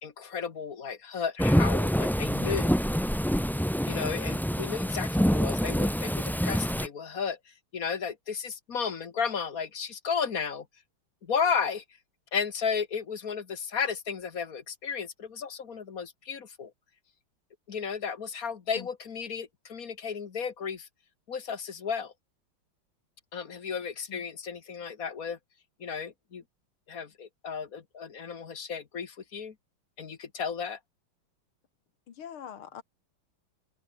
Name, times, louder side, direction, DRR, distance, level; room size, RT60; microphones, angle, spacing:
voice 1, 0.0-2.8 3.8-10.6 11.2-11.8 12.3-16.7 17.7-20.9 21.3-22.1 23.3-25.4 25.8-26.4 26.9-29.5 30.0-30.8, left 6 dB, 45° left, 1.8 m, -33 dB
Thunderstorm / Rain, 1.4-6.9, equal, ahead, 2.4 m, -26 dB
voice 2, 32.1-32.8, left 9 dB, 90° left, 2.5 m, -43 dB
omnidirectional pair, 2.3 m